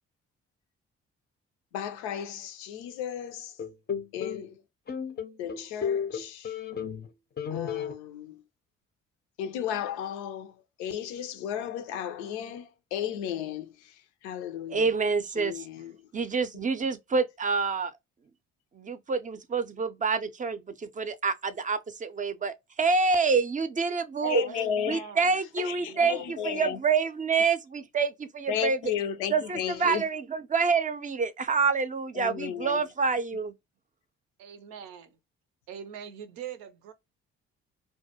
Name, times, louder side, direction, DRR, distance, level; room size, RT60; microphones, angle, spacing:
voice 1, 1.7-3.5 4.1-4.6 5.4-6.5 7.5-8.4 9.4-10.5 10.8-13.7 14.2-14.8 15.4-15.9 24.2-25.0 25.7-26.8 28.5-30.0 32.2-32.8, left 9 dB, 85° left, 0.5 m, -34 dB
sound 1, 3.6-4.4 4.9-7.1 7.4-7.9, left 7 dB, 30° left, 0.5 m, -33 dB
voice 2, 14.7-15.7 16.1-17.9 18.7-24.4 24.9-28.8 29.3-33.5, right 4 dB, 25° right, 0.5 m, -27 dB
voice 3, 24.3-26.3 34.4-35.1 35.7-36.9, right 8 dB, 75° right, 0.5 m, -43 dB
2.2 x 2.1 x 2.7 m
hypercardioid pair, 45°, 33 cm